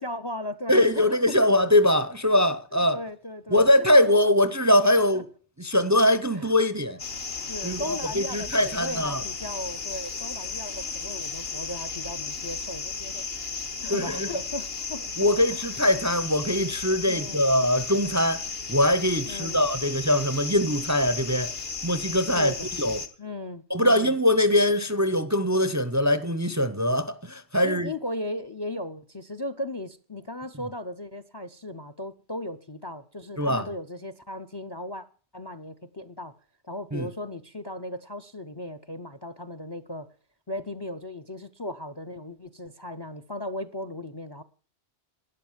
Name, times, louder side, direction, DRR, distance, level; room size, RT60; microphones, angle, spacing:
voice 1, 0.0-1.3 2.9-3.7 4.1-4.2 5.1-5.2 6.3-6.6 7.5-15.0 15.5-15.6 17.0-17.4 19.3-19.6 22.3-22.7 23.2-24.2 27.6-35.0 35.3-36.3 36.6-40.1 40.5-44.4, left 1 dB, 30° left, 0.5 m, -36 dB
voice 2, 0.7-3.0 3.5-5.3 5.6-7.0 7.6-9.2 13.9-14.3 15.2-18.4 18.7-21.5 21.8-22.5 22.8-23.0 23.7-27.9 33.4-33.7 36.9-37.1, left 1 dB, 20° right, 0.5 m, -22 dB
sound 1, 7.0-23.1, left 5 dB, 60° left, 1.6 m, -34 dB
12.0 x 10.0 x 7.3 m
omnidirectional pair, 1.2 m